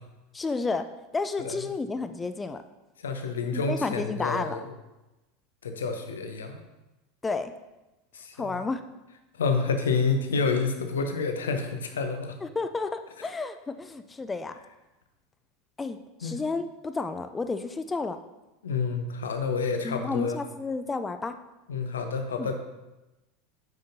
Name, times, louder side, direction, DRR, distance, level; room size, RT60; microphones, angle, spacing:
voice 1, 0.3-0.9 1.1-2.6 3.5-4.7 7.2-7.5 8.4-8.8 12.4-14.5 15.8-18.2 19.8-21.3 22.4-22.5, left 3 dB, 15° left, 9 dB, 0.3 m, -31 dB
voice 2, 3.0-4.6 5.6-6.6 8.1-8.6 9.4-12.3 16.2-16.4 18.6-20.4 21.7-22.5, left 4 dB, 75° left, 6 dB, 0.6 m, -28 dB
9.2 x 5.1 x 2.6 m, 1.0 s
figure-of-eight pair, 80°, 0 cm